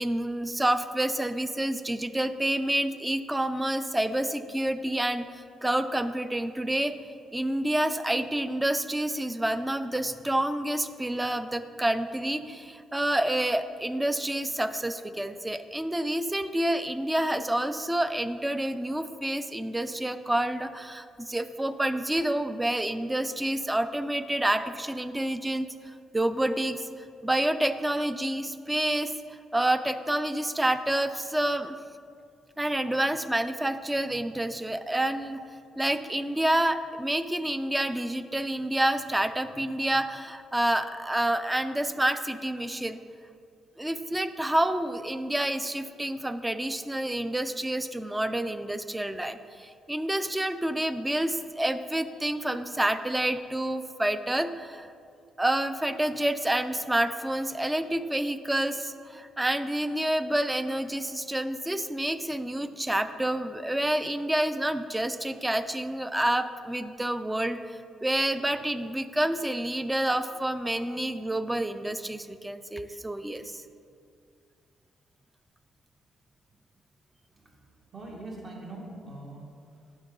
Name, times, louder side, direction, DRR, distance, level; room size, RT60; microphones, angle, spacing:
voice 1, 0.0-7.0 7.3-26.9 27.2-31.8 32.6-35.4 35.8-43.0 43.8-54.9 55.4-73.6, right 1 dB, 10° right, 11 dB, 0.4 m, -28 dB
voice 2, 77.3-80.0, right 2 dB, 40° right, -2 dB, 1.8 m, -43 dB
9.3 x 6.1 x 3.9 m, 2.3 s
cardioid pair, 90°, 0 cm